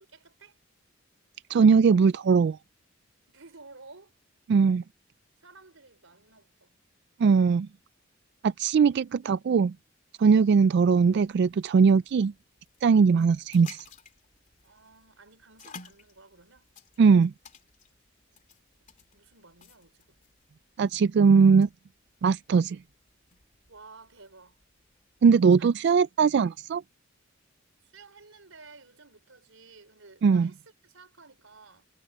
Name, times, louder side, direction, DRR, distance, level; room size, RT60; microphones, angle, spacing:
voice 1, 0.1-0.6 3.3-4.2 5.4-6.8 14.6-16.7 19.1-20.2 23.7-24.6 25.6-25.7 26.0-26.1 27.8-31.9, right 3 dB, 90° right, 4.4 m, -53 dB
voice 2, 1.5-2.6 4.5-4.8 7.2-7.7 8.4-9.7 10.2-12.3 12.8-13.9 17.0-17.3 20.8-21.7 22.2-22.8 25.2-26.8 30.2-30.5, right 5 dB, 55° right, 0.3 m, -20 dB
sound 1, 10.9-25.8, left 5 dB, 40° left, 2.9 m, -55 dB
head